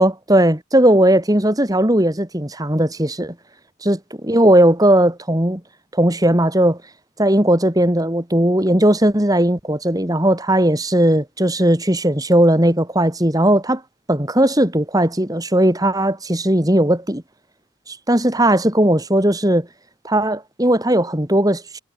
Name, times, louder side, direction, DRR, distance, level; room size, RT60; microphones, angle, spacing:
voice 1, 0.0-3.3 3.8-5.6 5.9-6.8 7.2-13.8 14.1-17.2 17.9-19.7 20.0-21.8, right 1 dB, 20° right, 2.6 m, -17 dB
head